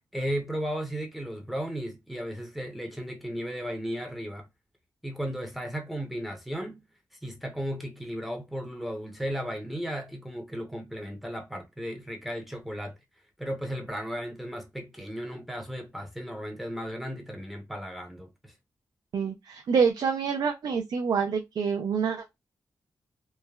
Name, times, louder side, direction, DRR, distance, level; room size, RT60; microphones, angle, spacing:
voice 1, 0.1-4.5 5.0-6.8 7.2-12.9 13.4-18.5, equal, ahead, 0.6 m, -35 dB
voice 2, 19.1-22.4, right 6 dB, 65° right, 0.4 m, -27 dB
3.2 x 2.0 x 2.2 m
wide cardioid pair, 125°, 7 cm